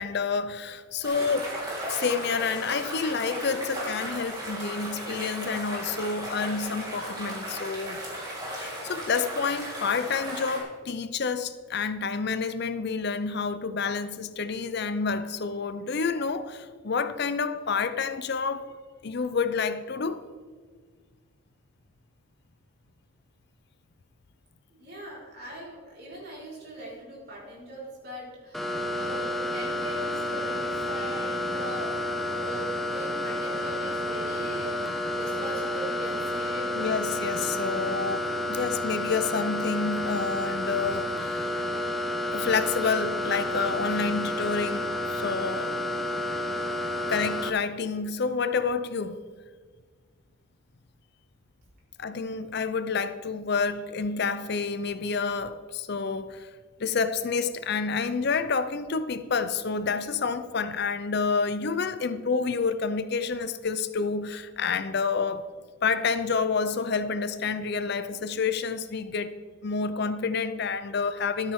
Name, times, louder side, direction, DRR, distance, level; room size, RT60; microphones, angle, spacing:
voice 1, 0.0-1.5 1.9-8.0 8.6-18.7 19.0-20.2 36.7-41.5 42.3-45.7 47.1-49.2 52.0-56.5 56.8-65.5 65.8-69.3 69.6-71.5, left 5 dB, 50° left, 11 dB, 0.5 m, -29 dB
sound 1, 1.0-10.6, right 1 dB, 20° right, 3.7 m, -36 dB
voice 2, 24.7-36.9, right 1 dB, 45° right, -5 dB, 4.5 m, -41 dB
sound 2, 28.5-47.5, left 1 dB, ahead, 0.8 m, -30 dB
13.5 x 12.5 x 3.6 m, 1.5 s
head